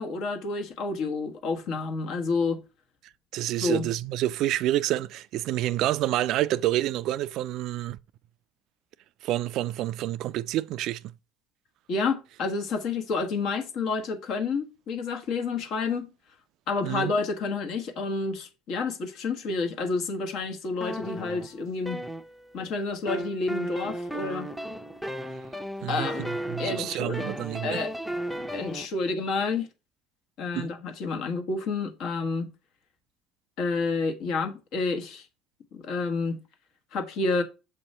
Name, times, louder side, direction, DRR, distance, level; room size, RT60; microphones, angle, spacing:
voice 1, 0.0-2.6 3.6-3.9 11.9-16.1 16.7-22.0 22.5-24.5 25.9-26.3 26.6-27.3 27.6-28.0 28.5-29.7 30.4-32.5 33.6-35.3 35.7-36.4 36.9-37.4, left 4 dB, 60° left, 1.3 m, -29 dB
voice 2, 3.3-8.0 9.2-11.0 16.8-17.1 25.8-26.1 26.5-27.8 30.5-30.7, right 14 dB, 60° right, 0.3 m, -28 dB
sound 1, 20.8-22.7 23.1-28.9, right 1 dB, ahead, 0.6 m, -35 dB
6.9 x 2.9 x 5.3 m
supercardioid pair, 110°, 0 cm